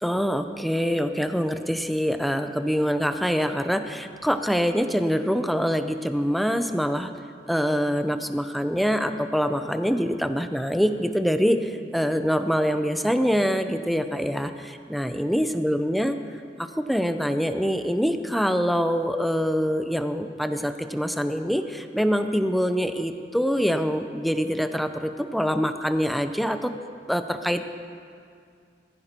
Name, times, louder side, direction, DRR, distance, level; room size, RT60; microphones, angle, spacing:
voice 1, 0.0-7.1 7.5-16.2 16.7-26.7 27.1-27.6, equal, ahead, 8 dB, 0.7 m, -25 dB
19.5 x 15.0 x 4.4 m, 2.2 s
head